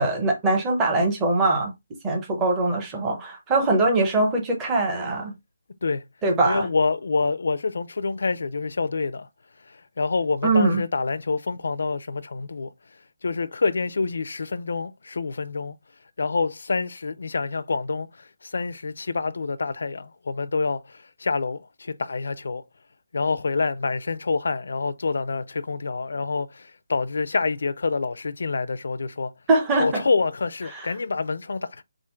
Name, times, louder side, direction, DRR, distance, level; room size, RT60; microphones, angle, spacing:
voice 1, 0.0-1.7 2.0-5.3 6.2-6.7 10.4-10.8 29.5-30.0 30.7-30.9, right 2 dB, 10° right, 0.7 m, -22 dB
voice 2, 6.5-9.3 9.7-12.7 13.2-15.8 16.2-22.6 23.1-29.3 29.8-31.8, left 4 dB, 65° left, 0.4 m, -27 dB
3.7 x 2.4 x 4.3 m
hypercardioid pair, 175°, 0 cm